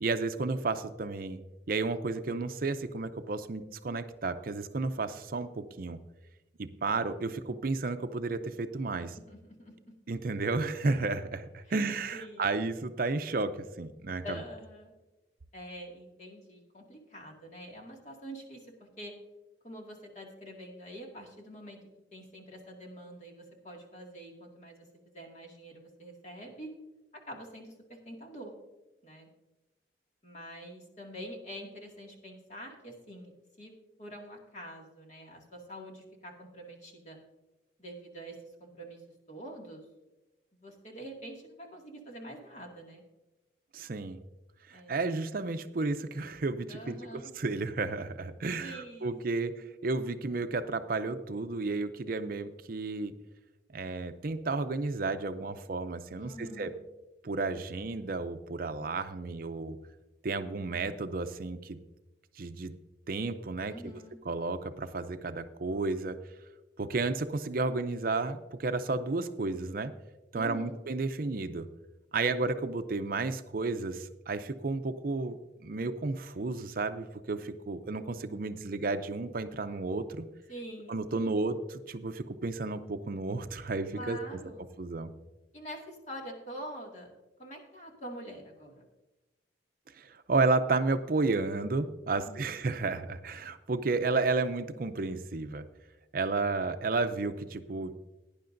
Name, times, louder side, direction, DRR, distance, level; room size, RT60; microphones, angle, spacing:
voice 1, 0.0-1.4 1.7-6.0 6.6-9.2 10.1-14.4 43.7-44.2 44.7-47.0 47.4-49.5 49.8-53.1 53.7-56.7 57.2-59.8 60.2-61.8 62.4-62.7 63.1-63.7 64.3-66.2 66.8-69.9 70.3-71.7 72.1-80.3 80.9-84.2 84.8-85.1 90.0-95.6 96.1-97.9, right 3 dB, 50° right, 9 dB, 0.5 m, -32 dB
voice 2, 9.3-9.7 12.1-12.5 14.2-14.9 15.5-19.1 19.6-21.8 22.1-26.7 27.3-28.5 29.0-29.3 30.2-33.3 33.6-33.7 34.0-37.2 37.8-38.4 38.6-39.0 39.3-39.8 40.6-43.0 44.7-45.2 46.7-47.3 48.6-49.6 56.2-56.7 63.7-64.2 70.3-70.8 80.5-81.5 83.9-84.7 85.5-87.1 87.4-88.8 92.1-92.6, equal, 40° left, 0 dB, 2.1 m, -45 dB
17.5 x 10.0 x 2.6 m, 1.1 s
head